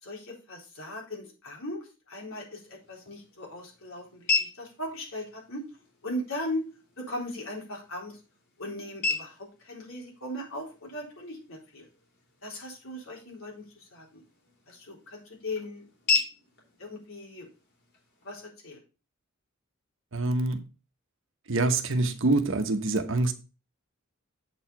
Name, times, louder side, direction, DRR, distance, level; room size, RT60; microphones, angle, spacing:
voice 1, 0.0-5.6 6.0-6.6 7.0-8.2 8.6-11.9 12.4-14.2 14.7-16.2 16.8-17.5 18.2-18.8, left 1 dB, 75° left, 4.0 m, -38 dB
sound 1, 2.5-18.5, left 4 dB, 55° left, 3.3 m, -37 dB
voice 2, 20.1-20.6 21.5-23.3, right 2 dB, 65° right, 1.1 m, -25 dB
7.9 x 4.8 x 5.7 m
head